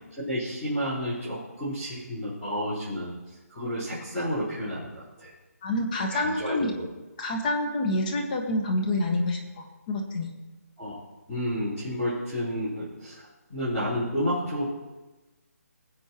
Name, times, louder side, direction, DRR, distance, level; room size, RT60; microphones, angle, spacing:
voice 1, 0.1-5.3 6.1-6.7 10.8-11.0 11.3-14.7, equal, 10° left, -16 dB, 4.2 m, -31 dB
voice 2, 5.6-6.7 7.2-10.3, left 1 dB, 30° left, 3 dB, 1.4 m, -27 dB
19.0 x 7.7 x 3.0 m, 1.1 s
hypercardioid pair, 165°, 9 cm